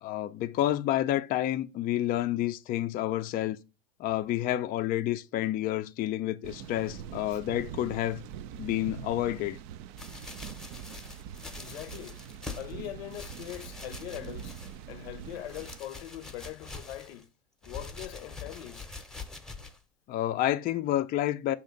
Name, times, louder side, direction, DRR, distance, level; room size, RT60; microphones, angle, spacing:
voice 1, 0.0-3.6 4.0-8.2 8.6-9.6 20.1-21.6, left 13 dB, 30° left, 0.4 m, -29 dB
sound 1, 6.4-15.8, right 9 dB, 50° right, 0.4 m, -44 dB
sound 2, 10.0-12.7 13.1-14.9 15.2-17.2 17.6-19.8 20.4-20.5, left 3 dB, ahead, 0.8 m, -44 dB
voice 2, 11.6-12.2 12.6-14.6 14.9-17.3 17.6-18.9, left 14 dB, 75° left, 0.6 m, -41 dB
6.4 x 2.9 x 5.1 m
hypercardioid pair, 105°, 31 cm